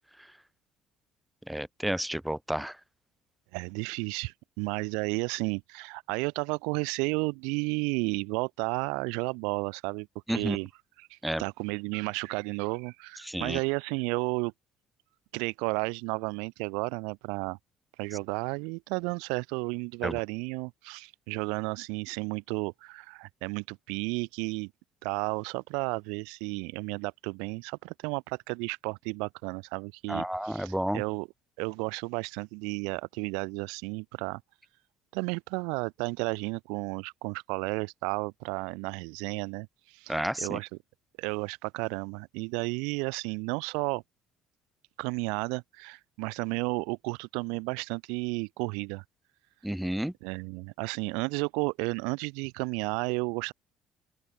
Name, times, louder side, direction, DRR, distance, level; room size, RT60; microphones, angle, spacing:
voice 1, 1.5-2.8 10.3-10.6 11.2-11.4 13.2-13.6 20.0-20.2 30.1-31.0 40.1-40.6 49.6-50.1, right 1 dB, 5° right, 0.5 m, -31 dB
voice 2, 3.5-10.1 10.3-10.7 11.0-14.5 15.3-17.6 18.0-24.7 25.0-31.3 31.6-34.4 35.1-40.7 41.2-44.0 45.0-49.0 50.2-53.5, right 32 dB, 65° right, 1.5 m, -33 dB
open air
figure-of-eight pair, 55°, 0 cm